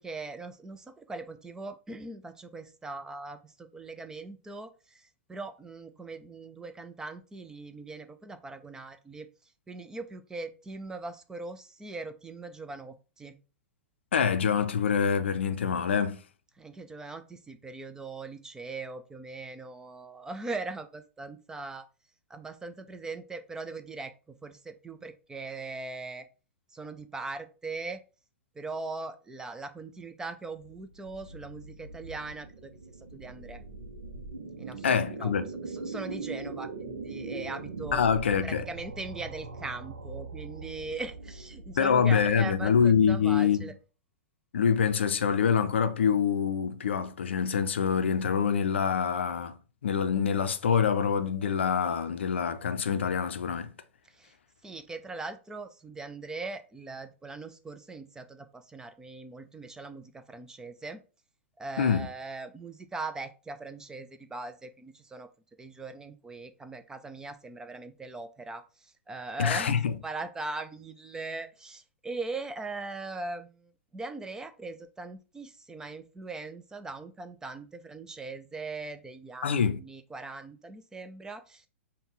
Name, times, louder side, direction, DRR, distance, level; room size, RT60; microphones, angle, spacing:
voice 1, 0.0-9.3 9.7-13.4 16.6-21.9 22.3-26.3 26.7-28.0 28.6-32.7 33.1-33.6 34.6-35.3 35.6-38.0 38.4-43.7 54.1-54.4 54.6-61.0 61.6-65.3 65.6-81.7, right 3 dB, 10° right, 0.4 m, -40 dB
voice 2, 14.1-16.2 34.8-35.4 37.9-38.6 41.8-43.7 44.5-49.5 49.8-53.7 61.8-62.1 69.4-70.0 79.4-79.8, left 7 dB, 65° left, 0.5 m, -25 dB
sound 1, 30.6-43.8, right 3 dB, 75° right, 0.6 m, -41 dB
5.2 x 2.2 x 3.7 m
figure-of-eight pair, 105°, 7 cm